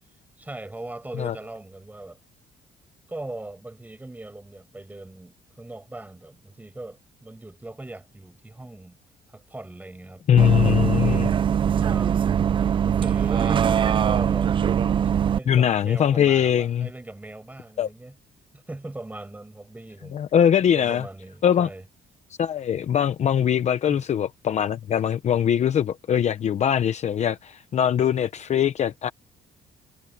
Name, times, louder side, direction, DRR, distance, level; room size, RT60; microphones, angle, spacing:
voice 1, 0.4-2.2 3.1-9.0 9.3-11.1 11.8-14.6 15.3-18.2 18.5-20.2 20.7-21.8 23.9-24.1, right 2 dB, 10° right, 7.2 m, -40 dB
voice 2, 10.3-11.3 15.5-16.9 17.8-17.9 20.1-21.0 21.4-21.7 22.4-29.1, left 9 dB, 40° left, 0.7 m, -21 dB
Bus, 10.4-15.4, right 8 dB, 30° right, 0.4 m, -22 dB
cardioid pair, 175°, 18 cm